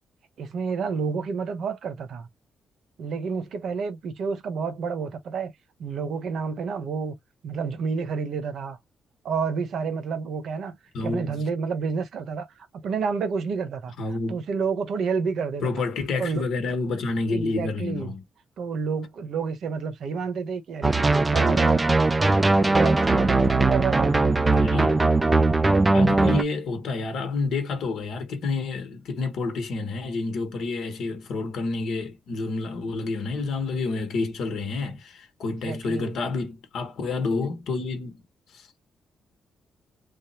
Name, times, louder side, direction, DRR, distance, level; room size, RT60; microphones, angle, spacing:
voice 1, 0.4-2.3 3.0-5.5 5.8-7.2 7.4-8.8 9.2-12.5 12.7-13.9 14.3-15.8 16.2-16.5 17.3-18.1 18.6-21.9 22.6-24.2 35.5-36.1, right 5 dB, 60° right, 0.9 m, -29 dB
voice 2, 10.9-11.4 14.0-14.4 15.6-18.2 24.5-25.0 25.9-38.2 38.5-38.7, left 3 dB, 70° left, 1.1 m, -29 dB
sound 1, 20.8-26.4, right 3 dB, 15° right, 0.3 m, -20 dB
3.5 x 2.1 x 4.2 m
cardioid pair, 170°, 0 cm